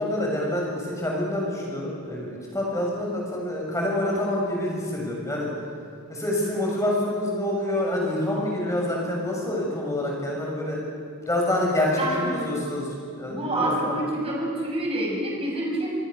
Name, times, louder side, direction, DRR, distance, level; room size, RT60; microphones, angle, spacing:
voice 1, 0.0-5.5 6.1-10.8 11.2-12.9 13.2-14.0, left 1 dB, 15° left, -2 dB, 6.6 m, -27 dB
voice 2, 12.0-12.4 13.3-15.9, right 1 dB, 25° right, -1 dB, 6.1 m, -27 dB
27.5 x 20.5 x 6.6 m, 2.3 s
head